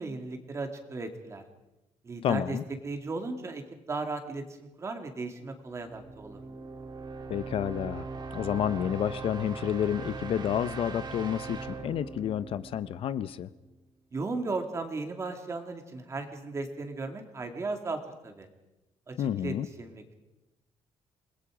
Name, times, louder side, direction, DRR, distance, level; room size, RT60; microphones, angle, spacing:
voice 1, 0.0-1.4 2.0-2.6 2.8-6.4 14.1-18.5 19.1-20.1, right 3 dB, 25° right, 5 dB, 2.4 m, -36 dB
voice 2, 2.2-2.6 7.3-8.1 8.3-13.5 19.2-19.7, left 10 dB, 55° left, 15 dB, 0.7 m, -30 dB
sound 1, 5.8-13.6, right 4 dB, 40° right, 2.1 m, -40 dB
28.0 x 20.0 x 5.0 m, 0.99 s
cardioid pair, 165°, 11 cm